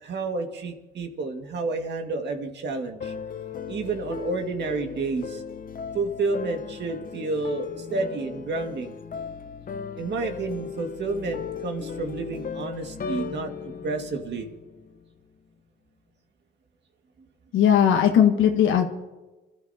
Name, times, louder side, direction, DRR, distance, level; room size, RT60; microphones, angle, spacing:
voice 1, 0.0-3.1 3.7-5.4 5.9-8.9 10.0-14.5, right 3 dB, 60° right, 4 dB, 2.0 m, -30 dB
sound 1, 3.0-15.1, left 6 dB, 45° left, 0.9 m, -37 dB
voice 2, 17.5-18.9, left 9 dB, 80° left, 4 dB, 1.2 m, -18 dB
27.0 x 13.0 x 2.8 m, 1.1 s
cardioid pair, 90°, 20 cm